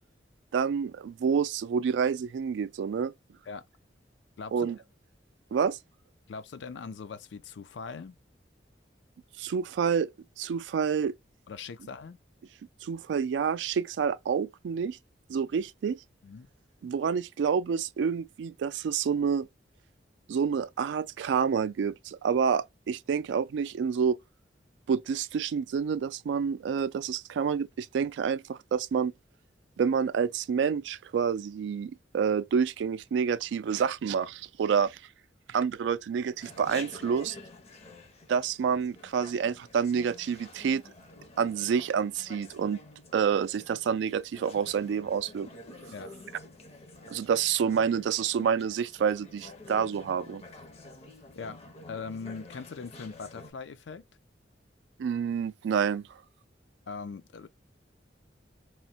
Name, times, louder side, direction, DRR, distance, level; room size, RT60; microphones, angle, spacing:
voice 1, 0.5-3.1 4.5-4.8 5.5-5.8 9.4-10.1 10.4-11.1 12.8-15.0 15.3-16.0 16.8-19.5 20.3-24.2 24.9-29.1 29.8-35.0 35.5-37.4 38.3-40.8 41.4-42.8 43.1-45.5 47.1-50.4 55.0-56.0, right 6 dB, 85° right, 0.3 m, -28 dB
voice 2, 4.4-4.7 6.3-8.2 11.5-12.2 16.2-16.5 45.9-46.1 51.3-51.6 51.9-54.0 56.9-57.5, left 5 dB, 85° left, 0.4 m, -40 dB
Chatter, 36.4-53.5, left 2 dB, 35° left, 0.5 m, -49 dB
3.0 x 2.1 x 2.7 m
head